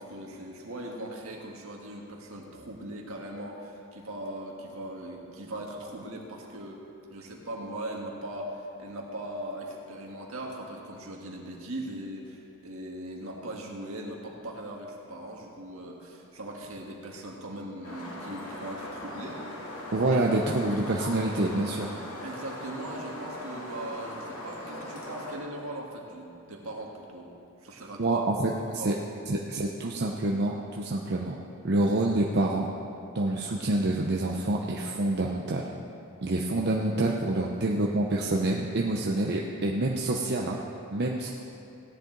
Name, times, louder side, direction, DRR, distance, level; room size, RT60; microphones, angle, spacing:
voice 1, 0.0-6.8 7.1-19.5 20.0-20.2 22.2-27.3 27.6-28.2 28.8-29.0, right 1 dB, 75° right, -1 dB, 1.8 m, -39 dB
sound 1, 17.8-25.4, left 1 dB, 75° left, 2.4 m, -40 dB
voice 2, 19.9-21.9 28.0-28.9 29.3-31.4 31.6-32.7 33.1-35.7 36.2-40.6 40.9-41.3, right 2 dB, 50° right, -1 dB, 0.7 m, -27 dB
16.5 x 10.0 x 3.9 m, 2.6 s
head